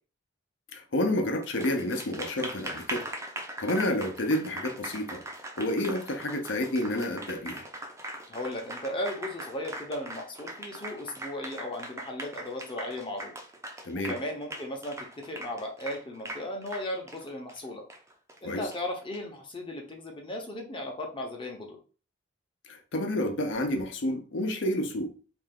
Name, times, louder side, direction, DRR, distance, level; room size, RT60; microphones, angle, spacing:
voice 1, 0.7-3.1 3.6-5.2 5.6-7.6 13.8-14.1 18.4-18.7 22.7-25.1, left 1 dB, 70° left, 0.6 m, -29 dB
Applause, 1.4-19.2, right 1 dB, 15° right, 0.4 m, -41 dB
voice 2, 8.3-13.3 13.9-17.8 18.4-21.8, left 1 dB, 25° left, 0.7 m, -36 dB
2.5 x 2.3 x 3.5 m
head